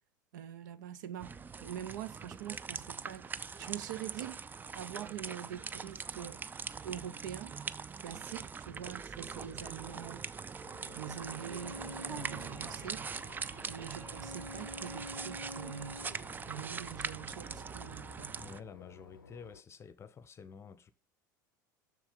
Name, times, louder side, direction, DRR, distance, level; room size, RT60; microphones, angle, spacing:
voice 1, 0.3-3.3 3.6-4.4 4.7-6.4 6.8-7.6 8.0-10.3 10.9-13.0 13.7-16.0 16.5-18.4, right 10 dB, 65° right, 0.6 m, -44 dB
sound 1, 1.2-18.6, right 5 dB, 15° right, 0.4 m, -42 dB
Boat Water vehicle / Engine, 10.6-19.6, left 5 dB, 85° left, 0.5 m, -56 dB
Bowed string instrument, 10.8-16.2, equal, 85° right, 1.5 m, -48 dB
voice 2, 18.4-20.9, left 6 dB, 25° left, 0.8 m, -50 dB
7.3 x 6.2 x 5.2 m
figure-of-eight pair, 75°, 11 cm